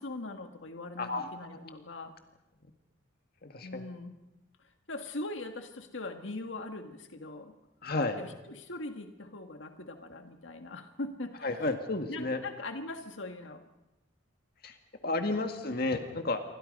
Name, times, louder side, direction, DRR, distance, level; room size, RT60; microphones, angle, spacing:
voice 1, 0.0-2.1 3.6-4.1 4.6-7.5 8.2-11.5 12.1-13.7 15.0-15.2, left 2 dB, 80° left, 6 dB, 1.7 m, -41 dB
voice 2, 1.0-1.3 1.6-1.7 3.4-3.9 7.8-8.2 11.4-12.4 14.6-14.8 15.0-16.4, left 2 dB, 55° left, 6 dB, 1.9 m, -32 dB
28.5 x 24.0 x 5.4 m, 0.99 s
head